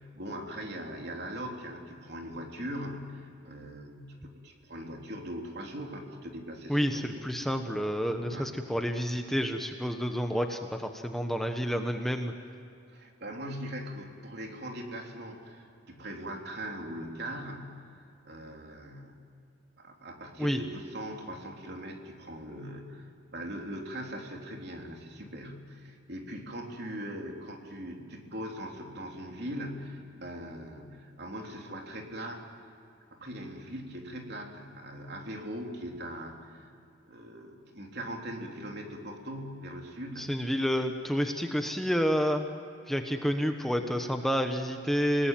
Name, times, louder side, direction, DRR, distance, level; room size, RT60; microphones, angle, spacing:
voice 1, 0.0-7.4 8.2-8.5 12.9-17.9 18.2-19.1 19.8-32.4 33.1-36.7 37.1-40.4, equal, 55° right, 2 dB, 3.5 m, -40 dB
voice 2, 6.7-12.3 20.4-20.6 40.2-42.4 42.9-45.3, equal, ahead, 5 dB, 1.1 m, -29 dB
28.5 x 19.0 x 9.2 m, 2.6 s
head